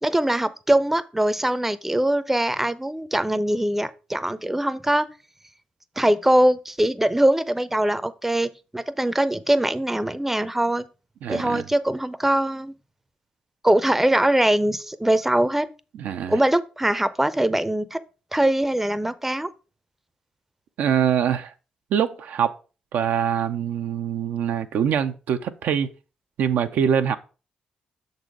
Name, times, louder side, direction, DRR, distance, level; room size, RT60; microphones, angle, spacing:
voice 1, 0.0-5.1 6.0-10.8 11.3-12.7 13.6-15.7 16.3-18.0 18.3-19.5, right 1 dB, 10° right, 0.5 m, -22 dB
voice 2, 11.2-11.6 15.9-16.4 20.8-21.5 21.9-22.6 22.9-25.9 26.4-27.2, right 8 dB, 75° right, 0.4 m, -24 dB
6.3 x 4.0 x 4.6 m
supercardioid pair, 50°, 3 cm